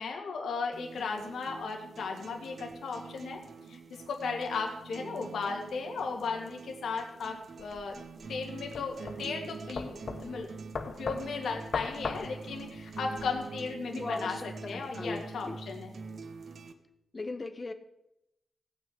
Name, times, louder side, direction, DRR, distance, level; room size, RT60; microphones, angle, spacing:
voice 1, 0.0-3.4 3.7-3.8 4.1-8.0 8.3-10.6 10.8-15.9, left 4 dB, 80° left, 1 dB, 2.4 m, -36 dB
sound 1, 0.7-16.7, right 4 dB, 60° right, 1.5 m, -45 dB
sound 2, 7.6-13.3, left 5 dB, 55° left, 1.3 m, -39 dB
voice 2, 13.9-14.5 14.7-15.6 17.1-17.7, left 3 dB, 30° left, 8 dB, 1.4 m, -38 dB
17.0 x 6.1 x 8.8 m, 0.86 s
cardioid pair, 95°, 0 cm